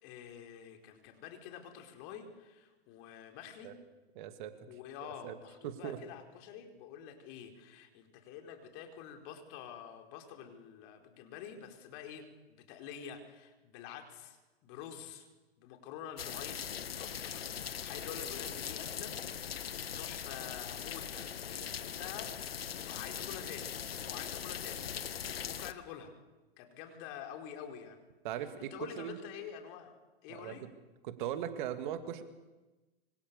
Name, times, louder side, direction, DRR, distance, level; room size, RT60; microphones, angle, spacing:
voice 1, 0.0-3.7 4.7-15.3 15.6-16.7 17.0-19.2 20.0-24.8 25.2-26.1 26.6-28.1 28.6-29.9 30.2-30.6, left 8 dB, 40° left, 4 dB, 4.6 m, -48 dB
voice 2, 4.2-4.5 5.2-5.3 5.6-6.0 28.2-29.2 30.3-30.5 31.0-32.2, right 10 dB, 50° right, 9 dB, 2.5 m, -39 dB
sound 1, 16.2-25.7, left 8 dB, 75° left, 1.3 m, -40 dB
26.5 x 25.0 x 7.0 m, 1.1 s
figure-of-eight pair, 105°, 30 cm